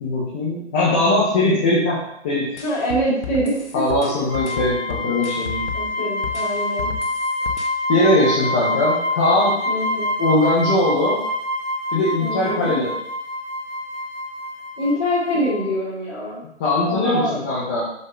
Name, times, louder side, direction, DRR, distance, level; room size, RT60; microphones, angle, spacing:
voice 1, 0.0-2.5 3.7-5.7 7.9-9.6 10.2-11.2 11.9-12.9 16.6-17.8, left 1 dB, 10° left, -8 dB, 0.5 m, -20 dB
sound 1, 2.6-5.9 6.2-7.7, left 7 dB, 70° left, 1.3 m, -33 dB
voice 2, 2.6-3.8 5.7-6.9 7.4-7.5 9.7-10.1 12.2-12.7 14.8-16.4 16.8-17.4, equal, 25° left, -5 dB, 2.8 m, -24 dB
sound 2, 4.3-15.7, left 1 dB, 55° right, 3.1 m, -26 dB
5.7 x 5.6 x 4.8 m, 0.76 s
figure-of-eight pair, 145°, 35 cm